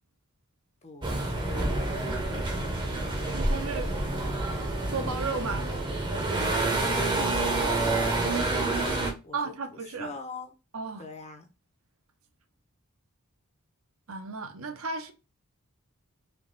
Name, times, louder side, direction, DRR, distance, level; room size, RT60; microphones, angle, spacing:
voice 1, 0.8-1.8 6.7-10.5 11.0-11.5, left 3 dB, 30° left, 0.7 m, -41 dB
sound 1, 1.0-9.1, right 2 dB, 20° right, 0.7 m, -28 dB
voice 2, 2.1-2.4 2.9-3.9 4.9-5.7 9.3-10.2 10.7-11.0 14.1-15.1, right 4 dB, 65° right, 0.7 m, -35 dB
3.4 x 2.9 x 3.8 m
head